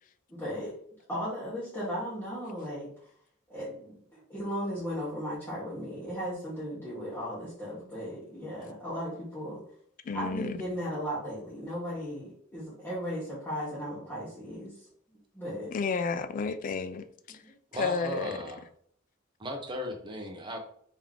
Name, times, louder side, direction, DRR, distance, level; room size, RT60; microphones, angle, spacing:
voice 1, 0.3-0.8 1.1-2.9 3.5-9.6 10.1-14.8 15.3-15.8 17.4-17.5, equal, 10° left, 1.1 m, -36 dB
voice 2, 10.1-10.6 15.7-17.4 17.8-18.3, left 5 dB, 40° left, 0.3 m, -31 dB
voice 3, 17.7-18.6 19.4-20.6, equal, 25° right, 0.6 m, -36 dB
3.5 x 3.0 x 3.6 m
head